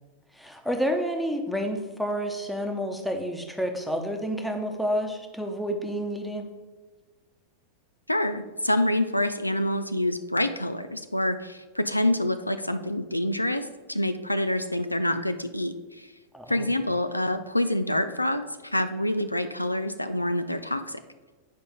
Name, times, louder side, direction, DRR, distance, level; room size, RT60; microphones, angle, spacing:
voice 1, 0.3-6.5 16.3-16.7, equal, ahead, 4 dB, 1.0 m, -29 dB
voice 2, 8.1-16.1 16.5-21.0, left 1 dB, 85° left, 10 dB, 0.4 m, -27 dB
8.6 x 5.2 x 3.7 m, 1.3 s
figure-of-eight pair, 90°, 0 cm